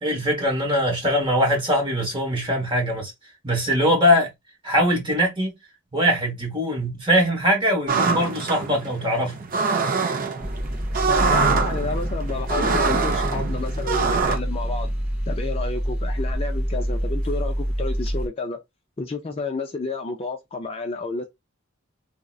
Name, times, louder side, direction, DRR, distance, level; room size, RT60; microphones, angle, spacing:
voice 1, 0.0-3.1 3.4-4.3 4.6-5.5 5.9-9.4, equal, 25° right, 1.1 m, -22 dB
sound 1, 7.9-14.4, right 4 dB, 40° right, 0.4 m, -24 dB
sound 2, 10.4-18.3, equal, 5° right, 0.7 m, -27 dB
voice 2, 11.1-14.9 15.3-18.6 19.0-21.2, left 3 dB, 30° left, 0.4 m, -30 dB
3.7 x 2.1 x 2.3 m
head